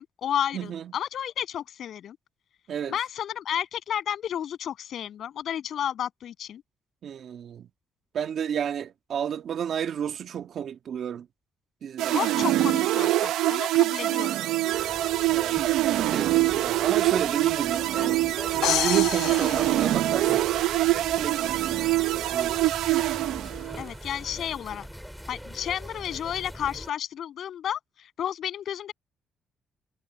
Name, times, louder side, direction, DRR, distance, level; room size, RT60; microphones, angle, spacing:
voice 1, 0.0-2.2 2.9-6.6 12.1-14.4 18.0-18.4 23.8-24.9 25.3-28.9, left 10 dB, 65° left, 7.6 m, -32 dB
voice 2, 0.5-0.9 2.7-2.9 7.0-7.7 8.1-11.3 11.8-12.2 15.3-15.6 15.9-18.2 18.5-20.5 20.9-22.5, right 8 dB, 60° right, 1.5 m, -32 dB
sound 1, 12.0-23.9, right 15 dB, 90° right, 0.6 m, -24 dB
sound 2, 14.7-26.9, equal, ahead, 4.1 m, -42 dB
sound 3, 18.6-20.6, left 13 dB, 85° left, 0.4 m, -29 dB
cardioid pair, 90°, 0 cm